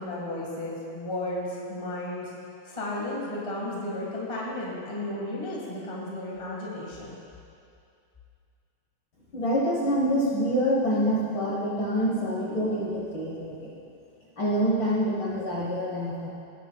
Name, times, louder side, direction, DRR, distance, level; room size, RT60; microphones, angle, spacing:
voice 1, 0.0-2.3 2.6-7.2, left 1 dB, 20° left, -4 dB, 0.8 m, -33 dB
voice 2, 9.3-13.7 14.4-16.3, equal, 50° left, -5 dB, 1.5 m, -26 dB
17.5 x 9.2 x 2.3 m, 2.4 s
omnidirectional pair, 3.7 m